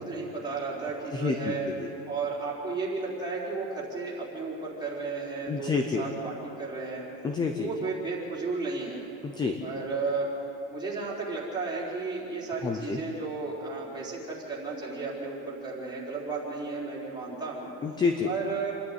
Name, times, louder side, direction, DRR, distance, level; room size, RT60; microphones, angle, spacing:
voice 1, 0.0-1.7 2.1-7.0 7.6-9.0 9.6-10.3 10.7-17.7 18.2-18.7, right 4 dB, 10° right, -6 dB, 4.2 m, -33 dB
voice 2, 1.1-1.9 5.5-6.0 7.2-7.7 9.2-9.6 12.6-13.0 17.8-18.3, left 4 dB, 10° left, 6 dB, 0.5 m, -28 dB
28.0 x 11.0 x 9.4 m, 2.9 s
cardioid pair, 175°, 41 cm